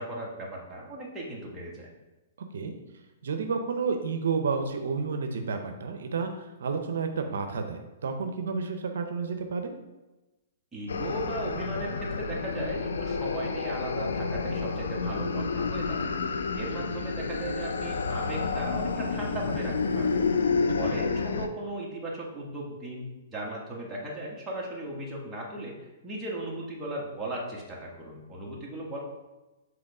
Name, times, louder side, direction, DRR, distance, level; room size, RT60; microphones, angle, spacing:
voice 1, 0.0-1.9 10.7-20.3 20.7-25.7 26.0-29.0, right 1 dB, 10° right, -4 dB, 1.5 m, -37 dB
voice 2, 3.2-9.7 20.8-21.0, right 5 dB, 75° right, 6 dB, 0.6 m, -31 dB
sound 1, 10.9-21.5, left 4 dB, 90° left, 0.5 m, -30 dB
5.0 x 4.0 x 4.8 m, 1.1 s
hypercardioid pair, 140°, 0 cm